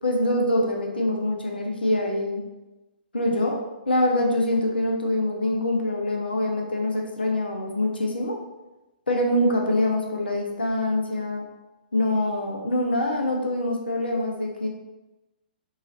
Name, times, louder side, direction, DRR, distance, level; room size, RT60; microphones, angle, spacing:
voice 1, 0.0-2.4 3.1-3.6 3.9-8.4 9.1-11.4 11.9-14.7, left 1 dB, 75° left, 1 dB, 0.5 m, -24 dB
3.0 x 2.3 x 2.6 m, 1.0 s
figure-of-eight pair, 120°, 5 cm